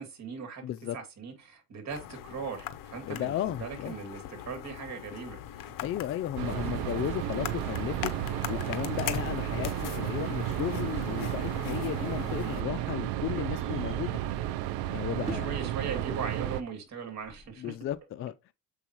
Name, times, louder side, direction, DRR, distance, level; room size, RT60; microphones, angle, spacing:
voice 1, 0.0-5.6 12.4-12.6 15.2-17.8, right 5 dB, 45° right, 2.7 m, -39 dB
voice 2, 0.6-1.0 3.0-3.9 5.8-8.1 8.5-14.2 14.9-15.5 17.6-18.3, left 12 dB, 35° left, 0.4 m, -34 dB
sound 1, 1.9-12.6, left 11 dB, 55° left, 0.9 m, -41 dB
sound 2, 6.4-16.6, right 13 dB, 70° right, 0.7 m, -33 dB
sound 3, 12.9-18.0, right 1 dB, 15° right, 3.6 m, -49 dB
7.0 x 5.5 x 3.0 m
cardioid pair, 110°, 38 cm